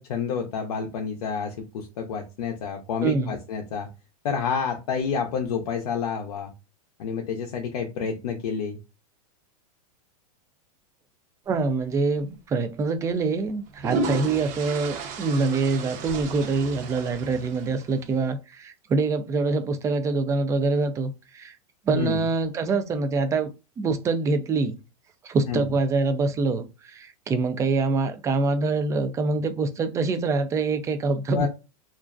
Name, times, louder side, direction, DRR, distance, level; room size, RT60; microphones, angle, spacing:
voice 1, 0.0-3.9 4.2-6.5 7.0-8.8 21.9-22.3 25.5-25.7 31.3-31.5, left 6 dB, 80° left, 0.6 m, -29 dB
voice 2, 3.0-3.3 11.5-21.6 21.9-24.8 25.2-31.5, right 3 dB, 15° right, 0.3 m, -25 dB
sound 1, 12.1-12.3 13.5-18.1, right 3 dB, 45° right, 0.8 m, -33 dB
2.4 x 2.1 x 2.4 m
supercardioid pair, 135°, 19 cm